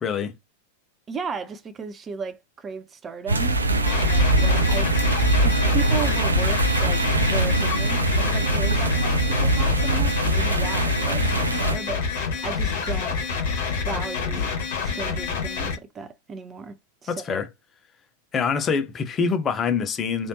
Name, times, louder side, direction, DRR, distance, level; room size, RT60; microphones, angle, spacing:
voice 1, 0.0-0.3 17.1-17.5 18.3-20.3, left 6 dB, 25° left, 0.7 m, -25 dB
voice 2, 1.1-4.9 5.4-13.2 13.8-14.5 14.8-16.8 17.0-17.4, right 5 dB, 20° right, 0.5 m, -35 dB
sound 1, 3.3-11.8, right 2 dB, 75° right, 0.5 m, -22 dB
sound 2, 3.9-15.7, left 5 dB, 55° left, 1.9 m, -27 dB
3.3 x 2.6 x 2.8 m
figure-of-eight pair, 90°, 0 cm